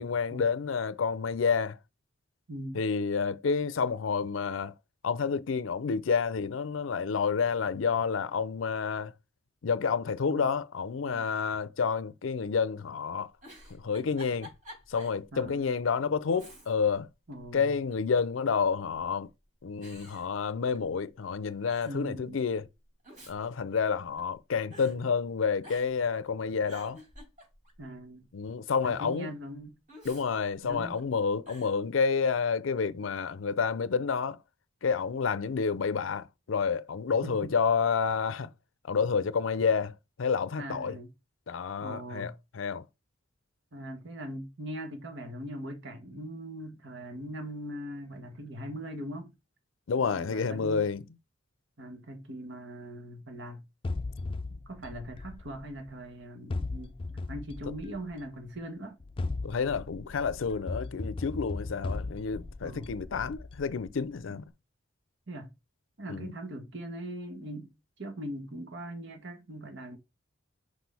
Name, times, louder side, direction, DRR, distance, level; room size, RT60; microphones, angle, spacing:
voice 1, 0.0-1.8 2.7-4.7 5.0-9.1 9.6-13.3 13.7-14.5 14.9-17.1 17.5-19.3 19.6-22.7 23.3-27.0 28.3-29.3 30.0-34.4 34.8-38.5 38.8-41.0 41.5-42.8 49.9-51.0 59.4-64.5 66.1-66.3, left 5 dB, 85° left, 0.5 m, -29 dB
Giggle, 13.4-15.2 15.6-15.7 16.3-17.0 17.3-18.1 18.9-19.3 19.8-21.0 21.3-21.4 21.6-22.0 22.8-24.4 24.7-25.0 25.6-26.1 26.4-27.8 29.9-31.0 31.4-31.8, equal, 45° right, 4.0 m, -51 dB
voice 2, 15.3-15.8 17.3-17.7 21.8-22.4 27.8-28.3 28.8-29.8 30.6-31.0 37.1-37.5 40.6-41.1 41.8-42.3 43.7-49.3 50.0-50.9 51.8-53.6 54.5-56.9 57.3-59.0 62.6-62.9 65.3-65.5 66.0-67.7 68.0-70.0, right 1 dB, 65° right, 1.5 m, -41 dB
sound 1, 53.8-56.0 56.5-58.3 59.0-64.1, left 3 dB, 30° left, 0.4 m, -37 dB
6.1 x 4.9 x 3.4 m
head